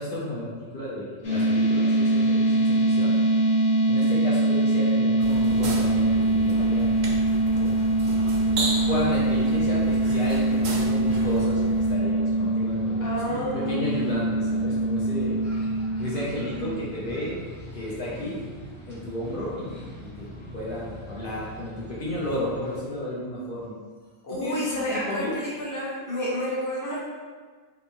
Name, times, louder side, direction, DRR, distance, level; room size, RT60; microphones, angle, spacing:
voice 1, 0.0-3.1 3.9-6.9 7.6-7.8 8.4-15.4 16.0-17.4 17.7-18.4 18.9-20.3 20.5-23.8 24.4-25.4, left 1 dB, 55° left, -7 dB, 0.9 m, -33 dB
sound 1, 1.2-16.8, right 2 dB, 75° left, 1.3 m, -23 dB
sound 2, 5.2-11.9, right 2 dB, 60° right, 0.6 m, -35 dB
sound 3, 6.7-22.8, left 1 dB, 10° right, 0.7 m, -43 dB
voice 2, 13.0-14.3 14.6-14.8 24.2-27.0, equal, 20° left, -7 dB, 0.8 m, -30 dB
3.8 x 2.4 x 2.9 m, 1.6 s
omnidirectional pair, 1.2 m